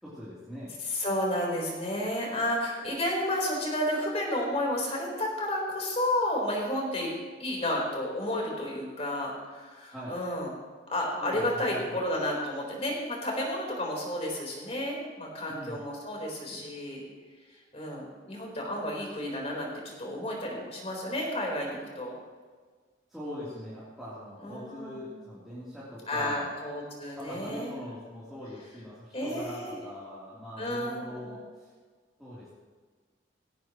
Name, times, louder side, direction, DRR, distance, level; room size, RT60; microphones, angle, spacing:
voice 1, 0.0-0.7 9.9-10.2 11.2-12.0 15.5-15.8 16.5-16.6 23.1-26.5 27.2-31.7 32.2-32.5, equal, ahead, -11 dB, 3.5 m, -42 dB
voice 2, 0.8-7.1 7.4-10.5 10.9-17.0 17.7-22.1 24.4-25.0 26.1-27.7 29.1-29.8 30.6-31.4, left 1 dB, 35° left, -1 dB, 4.4 m, -31 dB
18.5 x 17.0 x 3.2 m, 1.5 s
head